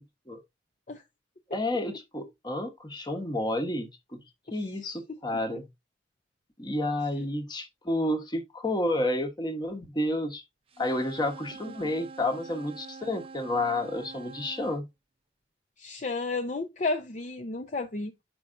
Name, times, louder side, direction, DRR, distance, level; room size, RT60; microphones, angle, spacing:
voice 1, 1.5-4.2 4.5-5.7 6.6-10.4 10.8-14.9, left 1 dB, 25° left, 1.1 m, -30 dB
sound 1, 10.7-14.8, right 4 dB, 30° right, 0.6 m, -45 dB
voice 2, 15.8-18.1, left 3 dB, 40° left, 0.6 m, -32 dB
7.6 x 5.6 x 2.6 m
head